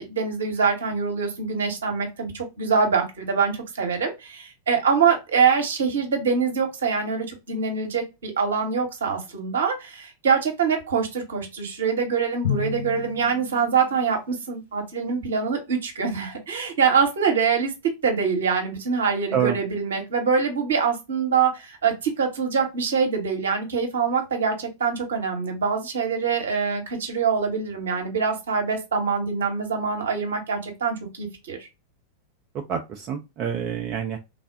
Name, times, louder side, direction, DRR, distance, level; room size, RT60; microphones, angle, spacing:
voice 1, 0.0-17.7 18.0-31.7, right 5 dB, 65° right, 4 dB, 0.8 m, -24 dB
Drum, 12.4-14.2, left 7 dB, 65° left, 0.9 m, -31 dB
voice 2, 32.7-34.2, right 8 dB, 35° right, 3 dB, 0.4 m, -27 dB
3.3 x 2.0 x 2.4 m, 0.25 s
figure-of-eight pair, 90°, 0 cm